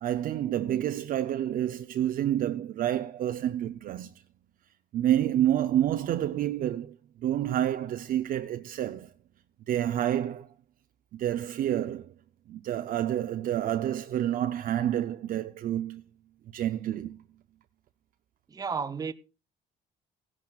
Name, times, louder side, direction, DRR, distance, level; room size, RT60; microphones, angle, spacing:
voice 1, 0.0-4.2 4.9-9.1 9.7-10.5 11.1-12.1 12.5-16.0 16.5-17.2, right 11 dB, 55° right, 0.6 m, -28 dB
voice 2, 18.5-19.1, right 5 dB, 20° right, 0.7 m, -32 dB
16.5 x 10.5 x 2.4 m
cardioid pair, 110°, 17 cm